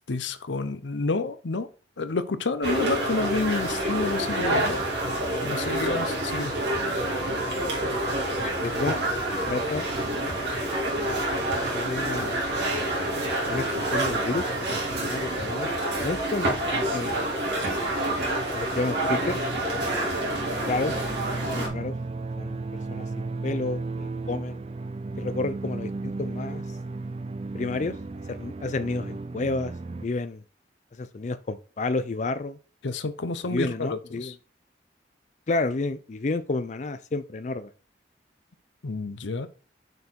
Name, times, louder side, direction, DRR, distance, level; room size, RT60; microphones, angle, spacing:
voice 1, 0.1-1.7 2.0-4.8 5.4-6.5 32.8-33.7 34.2-34.3 38.8-39.5, left 3 dB, 90° left, 13 dB, 0.7 m, -29 dB
sound 1, 2.6-21.7, right 1 dB, 70° right, 2.4 m, -27 dB
voice 2, 8.4-9.0 9.3-10.3 10.9-11.2 11.7-12.5 13.5-15.7 16.0-17.3 18.5-19.4 19.9-20.1 20.5-20.9 21.4-21.9 22.4-22.6 22.9-24.6 25.2-26.8 27.5-28.0 28.3-29.7 30.0-30.4 30.9-32.6 33.4-34.4 35.5-37.7, left 3 dB, 40° left, 11 dB, 0.4 m, -31 dB
sound 2, 19.3-30.1, right 3 dB, 35° right, 0.4 m, -35 dB
6.6 x 4.4 x 4.4 m, 0.38 s
head